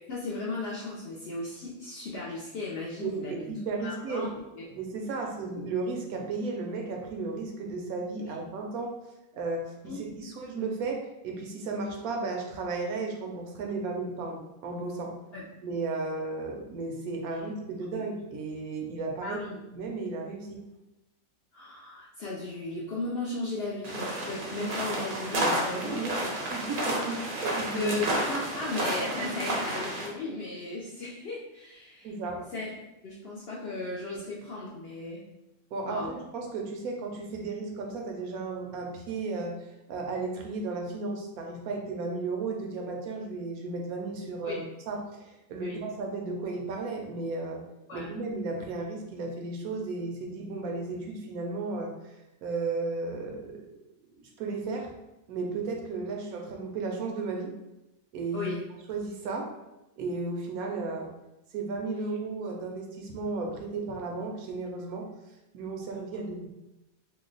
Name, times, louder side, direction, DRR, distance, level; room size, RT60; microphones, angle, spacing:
voice 1, 0.1-3.5 3.8-4.3 4.5-4.7 8.3-8.4 9.8-10.3 15.3-15.4 17.3-17.4 19.2-19.6 21.5-26.6 27.7-32.1 32.5-32.7 33.0-35.2 35.8-36.1 44.4-44.6 45.6-45.8 47.9-48.1 58.3-58.6, left 2 dB, 65° left, -4 dB, 0.6 m, -36 dB
voice 2, 3.0-4.3 4.7-8.9 9.3-15.1 15.6-19.4 19.7-20.6 25.4-26.1 26.5-27.9 32.0-32.5 35.7-39.6 39.9-47.6 47.9-51.9 52.4-53.7 54.2-54.9 55.3-57.5 58.1-58.5 58.9-59.5 60.0-61.1 61.5-65.1 65.5-66.5, right 3 dB, 80° right, 1 dB, 1.1 m, -34 dB
sound 1, 23.8-30.1, right 1 dB, 50° right, 0.7 m, -31 dB
2.8 x 2.1 x 3.8 m, 0.95 s
omnidirectional pair, 1.5 m